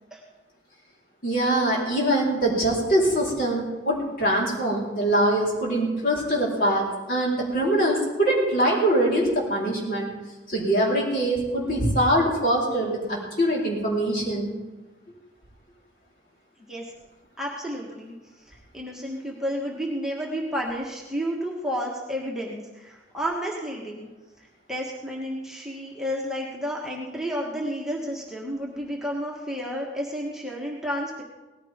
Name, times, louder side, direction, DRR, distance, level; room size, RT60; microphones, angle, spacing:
voice 1, 1.2-10.1 10.5-14.6, right 1 dB, 55° left, -4 dB, 4.3 m, -23 dB
voice 2, 17.4-18.1 18.5-24.1 24.4-31.2, equal, 5° right, -3 dB, 1.6 m, -31 dB
18.5 x 14.5 x 3.7 m, 1.1 s
head